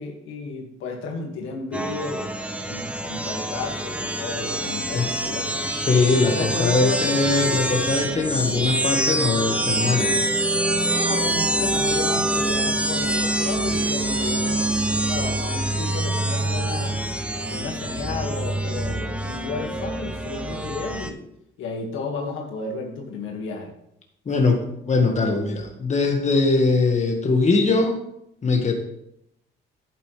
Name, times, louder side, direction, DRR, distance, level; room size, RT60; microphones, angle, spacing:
voice 1, 0.0-2.3 2.6-5.7 6.2-7.2 10.9-14.6 15.0-17.0 17.5-21.2 21.6-23.7, left 4 dB, 85° left, 1 dB, 2.0 m, -32 dB
sound 1, 1.7-21.1, right 1 dB, 5° right, 0.9 m, -25 dB
voice 2, 5.9-10.1 24.2-24.6 24.9-28.0 28.4-28.7, left 3 dB, 35° left, 3 dB, 1.8 m, -21 dB
10.5 x 9.1 x 3.4 m, 0.78 s
cardioid pair, 90°, 20 cm